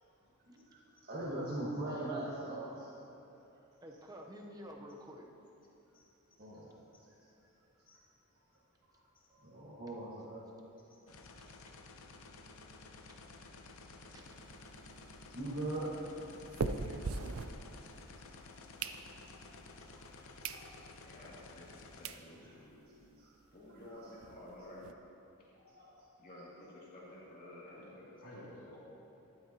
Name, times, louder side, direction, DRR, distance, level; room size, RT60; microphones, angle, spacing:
voice 1, 0.5-3.0 6.4-7.2 7.4-7.5 7.8-8.0 8.8-8.9 9.3-10.5 13.2-13.3 14.0-14.2 14.9-15.9 17.0-17.2 18.0-18.6 19.1-19.2 19.9-20.8 22.4-22.5 23.2-23.3 23.6-24.1 25.5-26.1 26.3-26.5, right 1 dB, 45° right, -7 dB, 1.5 m, -43 dB
voice 2, 3.8-5.3 11.4-11.7 14.1-14.4, equal, 15° right, 1 dB, 0.8 m, -50 dB
sound 1, 11.1-22.1, left 3 dB, 65° left, 0.7 m, -53 dB
sound 2, 14.2-18.2 18.5-19.5 20.0-20.1 20.4-20.7 21.1-21.2 21.7-21.8 22.0-22.2 22.7-22.8 22.9-23.1 23.4-23.5 23.8-24.9, right 4 dB, 65° right, 0.5 m, -41 dB
voice 3, 16.8-17.6 22.3-22.5 27.6-27.9 28.2-28.8, left 1 dB, 80° left, -8 dB, 2.7 m, -54 dB
voice 4, 21.0-23.0 23.5-24.9 26.2-28.1, left 1 dB, 40° left, -7 dB, 2.5 m, -53 dB
12.5 x 12.0 x 2.9 m, 2.8 s
head